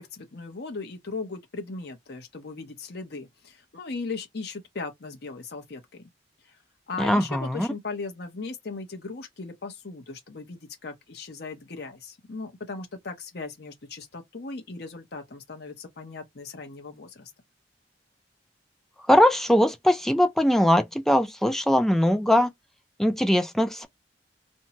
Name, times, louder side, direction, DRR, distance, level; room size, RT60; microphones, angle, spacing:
voice 1, 0.0-6.0 6.5-6.6 6.9-17.3, left 3 dB, 65° left, 0.8 m, -38 dB
voice 2, 7.0-7.7 19.1-22.5 23.0-23.9, equal, ahead, 0.3 m, -21 dB
2.6 x 2.2 x 2.8 m
head